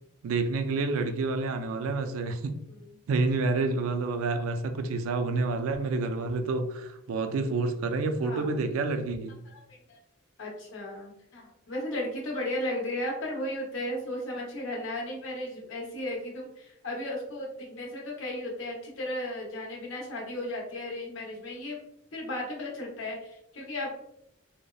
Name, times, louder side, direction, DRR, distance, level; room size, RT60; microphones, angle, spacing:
voice 1, 0.2-2.6 3.1-9.4, right 3 dB, 80° right, 7 dB, 0.3 m, -29 dB
voice 2, 8.2-8.6 9.5-10.0 10.4-21.8 22.1-23.9, left 1 dB, 65° left, -2 dB, 0.7 m, -35 dB
2.7 x 2.0 x 2.2 m, 0.77 s
head